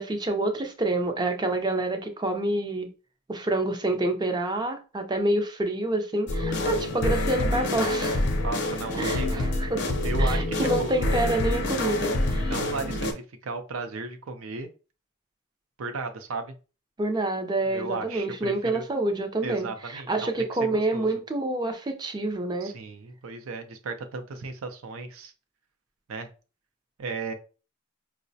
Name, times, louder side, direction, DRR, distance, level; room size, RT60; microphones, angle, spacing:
voice 1, 0.0-2.9 3.3-8.2 8.9-9.9 10.2-12.5 17.0-22.7, right 2 dB, 20° right, 0.4 m, -27 dB
sound 1, 6.3-13.1, left 1 dB, 55° left, 0.5 m, -26 dB
voice 2, 8.4-9.5 10.0-10.9 12.4-13.1 13.4-14.7 15.8-16.5 17.7-18.8 19.4-21.1 22.6-25.3 26.1-26.3 27.0-27.3, right 3 dB, 75° right, 0.5 m, -35 dB
4.7 x 2.1 x 2.6 m
head